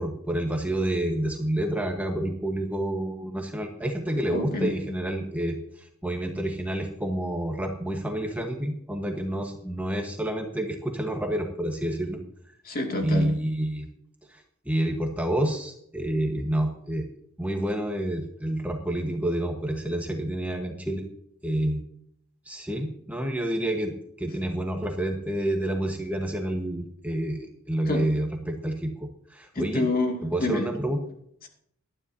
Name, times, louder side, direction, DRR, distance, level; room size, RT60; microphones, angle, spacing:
voice 1, 0.0-12.2 13.0-13.9 14.3-17.0 17.4-21.0 21.4-21.8 22.5-29.9 30.2-31.0, right 1 dB, 5° right, 2 dB, 1.2 m, -29 dB
voice 2, 4.3-4.7 12.6-13.3 27.9-28.0 29.5-30.7, left 2 dB, 40° left, 1 dB, 2.4 m, -27 dB
19.0 x 12.5 x 2.8 m, 0.68 s
head